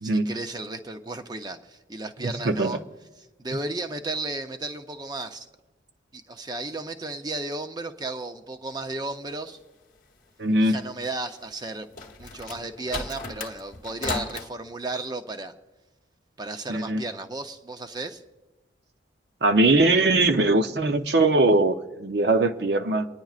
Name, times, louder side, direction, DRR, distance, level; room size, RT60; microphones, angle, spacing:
voice 1, 0.0-2.8 3.2-5.5 6.1-9.6 10.6-11.9 12.2-15.5 16.4-18.2, right 2 dB, 20° right, 7 dB, 0.6 m, -34 dB
voice 2, 2.2-2.7 10.4-10.8 16.7-17.0 19.4-23.1, right 2 dB, 60° right, 7 dB, 0.7 m, -21 dB
sound 1, 11.6-14.5, left 4 dB, 45° left, 1.0 m, -35 dB
29.5 x 10.5 x 2.4 m, 1.1 s
head